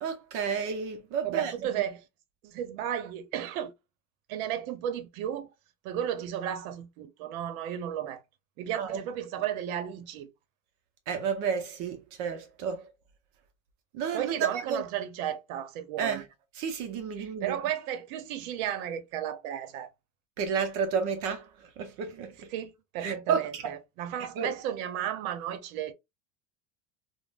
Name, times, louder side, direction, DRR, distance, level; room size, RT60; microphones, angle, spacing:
voice 1, 0.0-1.8 8.7-9.0 11.1-12.9 13.9-14.8 16.0-16.3 16.5-17.5 20.4-22.5 23.0-23.7 24.2-24.5, right 6 dB, 50° right, 0.6 m, -31 dB
voice 2, 1.2-2.0 2.4-3.7 4.3-5.5 5.8-8.2 8.6-10.3 14.1-16.2 17.2-19.9 22.5-25.9, right 10 dB, 90° right, 0.7 m, -34 dB
3.5 x 2.1 x 2.3 m
cardioid pair, 170°, 41 cm